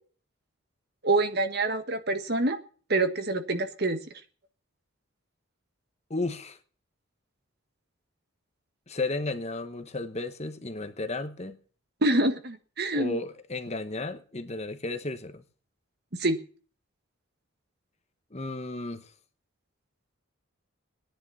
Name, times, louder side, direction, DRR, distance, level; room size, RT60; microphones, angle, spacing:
voice 1, 1.0-2.6 2.9-4.0 12.0-13.2 16.2-16.4, right 2 dB, 50° right, 1.5 m, -26 dB
voice 2, 6.1-6.6 8.9-11.6 12.9-15.4 18.3-19.1, left 2 dB, 30° left, 1.1 m, -33 dB
17.5 x 10.5 x 5.7 m
head